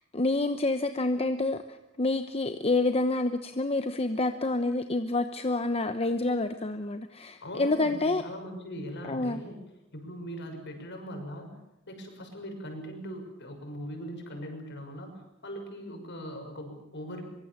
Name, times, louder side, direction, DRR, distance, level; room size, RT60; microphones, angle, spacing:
voice 1, 0.1-8.2 9.0-9.4, left 2 dB, 30° left, 8 dB, 0.9 m, -28 dB
voice 2, 7.4-9.6 9.9-11.6 11.9-17.2, equal, 55° left, 4 dB, 6.5 m, -40 dB
24.0 x 23.0 x 7.3 m, 0.86 s
head